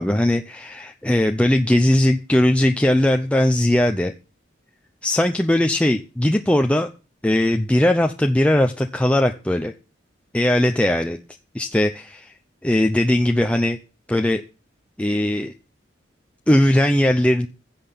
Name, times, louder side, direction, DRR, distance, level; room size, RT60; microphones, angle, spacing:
voice 1, 0.0-4.1 5.0-6.9 7.2-9.7 10.3-11.2 11.5-12.3 12.6-13.8 14.1-14.4 15.0-15.5 16.5-17.5, left 1 dB, 5° left, 5 dB, 0.6 m, -19 dB
16.0 x 5.9 x 6.9 m, 0.34 s
head